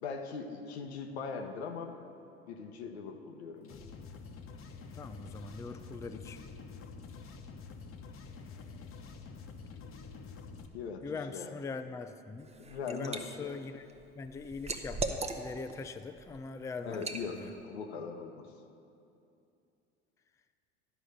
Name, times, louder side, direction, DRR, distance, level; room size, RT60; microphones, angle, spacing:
voice 1, 0.0-2.0 2.5-3.8 10.7-11.5 12.6-13.6 16.9-18.5, left 5 dB, 85° left, 5 dB, 0.8 m, -40 dB
sound 1, 3.6-10.7, left 4 dB, 45° left, 0.9 m, -47 dB
voice 2, 4.9-6.4 11.0-12.5 12.9-13.9 14.1-17.1 17.3-17.5, left 4 dB, 10° left, 9 dB, 0.3 m, -42 dB
Liquid, 12.4-13.2 13.6-15.7 16.2-16.4 16.9-17.2, right 3 dB, 20° right, 0.7 m, -38 dB
11.0 x 5.0 x 6.6 m, 2.6 s
hypercardioid pair, 75°, 32 cm